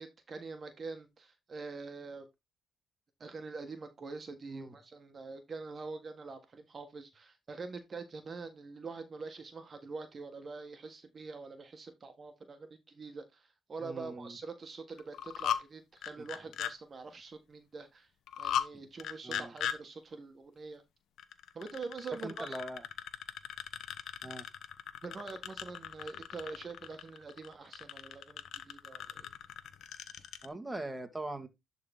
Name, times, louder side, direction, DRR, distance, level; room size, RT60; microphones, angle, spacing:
voice 1, 0.0-2.3 3.2-18.1 18.4-20.8 21.5-22.6 25.0-29.3, right 4 dB, 40° right, 1.4 m, -45 dB
voice 2, 13.8-14.4 18.7-18.9 19.2-19.5 22.2-22.8 24.2-24.5 30.4-31.5, right 2 dB, 10° right, 1.7 m, -41 dB
sound 1, 15.0-15.6 16.0-16.7 18.3-18.7 19.0-19.8 21.2-30.5, left 9 dB, 75° left, 0.9 m, -38 dB
11.0 x 3.9 x 3.7 m
cardioid pair, 90°, 0 cm